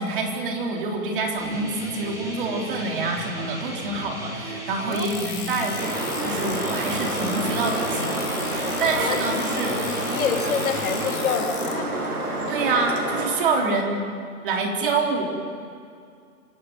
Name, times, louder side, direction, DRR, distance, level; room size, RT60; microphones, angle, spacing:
voice 1, 0.0-9.8 12.5-14.0 14.4-15.2, right 3 dB, 35° right, 1 dB, 3.7 m, -27 dB
sound 1, 1.4-11.2, right 1 dB, 5° right, 2.9 m, -36 dB
sound 2, 4.9-11.7, left 8 dB, 35° left, 3.5 m, -37 dB
sound 3, 5.8-13.3, right 1 dB, 85° right, 7.9 m, -28 dB
voice 2, 9.0-11.9 13.6-13.8, left 7 dB, 65° left, 5 dB, 2.5 m, -28 dB
26.5 x 17.5 x 9.5 m, 2.3 s
hypercardioid pair, 170°, 44 cm